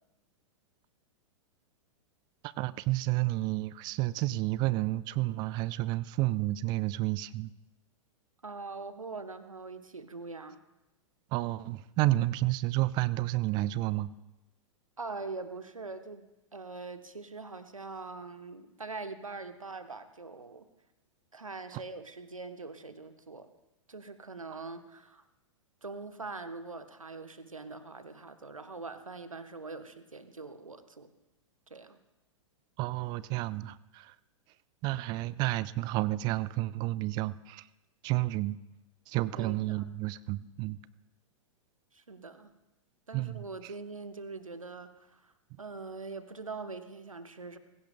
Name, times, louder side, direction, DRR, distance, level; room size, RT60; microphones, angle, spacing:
voice 1, 2.6-7.5 11.3-14.1 21.7-21.8 32.8-34.1 34.8-37.6 38.0-38.6 39.1-40.8 43.1-43.4, right 17 dB, 25° right, 19 dB, 0.3 m, -30 dB
voice 2, 8.4-10.6 15.0-16.3 16.5-20.7 21.3-23.5 23.9-25.2 25.8-31.1 31.7-32.0 39.3-39.9 41.9-42.5 43.1-45.3 45.6-47.6, right 3 dB, 85° right, 10 dB, 1.0 m, -43 dB
21.0 x 16.5 x 2.2 m, 0.97 s
figure-of-eight pair, 105°, 17 cm